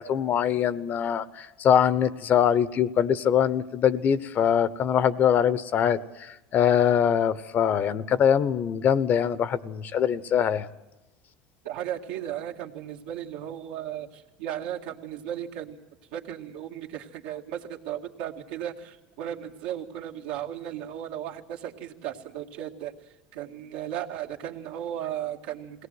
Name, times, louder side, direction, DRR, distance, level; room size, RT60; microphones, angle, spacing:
voice 1, 0.0-10.7, left 8 dB, 45° left, 16 dB, 0.9 m, -23 dB
voice 2, 11.6-15.8 16.1-22.9 23.3-25.9, right 11 dB, 85° right, 0 dB, 2.1 m, -35 dB
21.5 x 18.0 x 7.9 m, 1.0 s
supercardioid pair, 105°, 4 cm